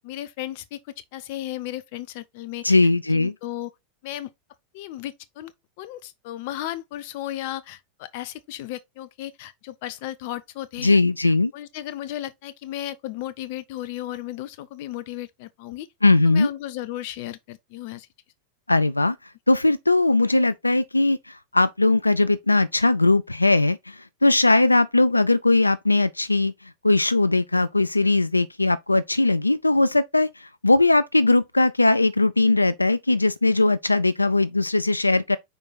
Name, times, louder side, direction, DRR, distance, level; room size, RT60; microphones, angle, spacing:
voice 1, 0.0-2.8 3.1-3.7 4.0-4.3 4.7-5.5 5.8-11.0 11.5-15.9 16.2-18.1, left 13 dB, 50° left, 0.7 m, -35 dB
voice 2, 2.6-3.3 10.8-11.5 16.0-16.5 18.7-19.2 19.5-35.4, left 2 dB, 85° left, 0.3 m, -20 dB
5.1 x 4.6 x 4.2 m
figure-of-eight pair, 90°, 0 cm